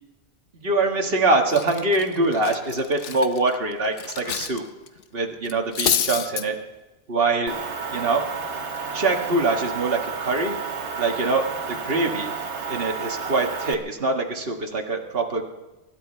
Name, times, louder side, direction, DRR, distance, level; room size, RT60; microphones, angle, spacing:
voice 1, 0.6-4.6 5.1-6.5 7.1-7.5 7.9-8.2 8.9-10.5 11.0-12.3 12.7-15.5, right 3 dB, 55° right, 2 dB, 2.0 m, -24 dB
Cutlery silverware, 0.9-1.1 1.5-4.6 4.9-5.0 5.4-6.4, left 8 dB, 85° left, 1.1 m, -28 dB
Motor vehicle (road) / Engine, 7.5-13.7, right 5 dB, 75° right, 1.5 m, -31 dB
24.0 x 12.5 x 4.5 m, 1.1 s
omnidirectional pair, 1.2 m